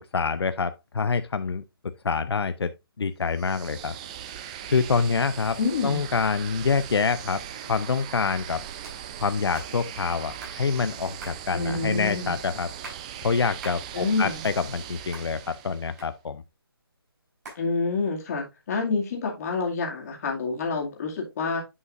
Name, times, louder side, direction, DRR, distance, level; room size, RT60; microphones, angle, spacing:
voice 1, 0.1-1.6 2.0-2.7 3.0-3.9 4.7-5.6 5.8-7.4 7.7-8.6 9.2-12.7 13.2-16.4, left 5 dB, 90° left, 0.6 m, -26 dB
sound 1, 3.3-16.1, right 9 dB, 15° right, 0.5 m, -40 dB
voice 2, 5.6-6.0 11.5-12.4 13.9-14.4 17.6-21.6, left 4 dB, 40° left, 2.3 m, -28 dB
sound 2, 8.8-9.0 9.5-9.7 10.4-10.6 11.2-11.4 12.1-12.2 12.7-13.0 13.6-13.8 14.2-14.9 15.1-15.3 16.0-16.5 17.4-17.6, right 3 dB, 40° right, 4.3 m, -42 dB
9.5 x 5.6 x 2.5 m
hypercardioid pair, 160°, 13 cm